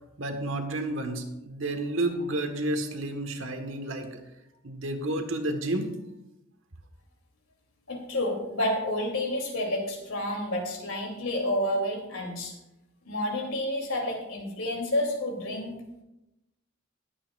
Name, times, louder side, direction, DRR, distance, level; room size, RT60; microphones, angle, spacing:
voice 1, 0.2-4.2 4.6-5.9, right 1 dB, 65° right, 5 dB, 1.5 m, -31 dB
voice 2, 7.9-12.5 13.0-15.8, left 1 dB, 80° left, 1 dB, 2.9 m, -29 dB
20.0 x 8.7 x 2.5 m, 0.92 s
head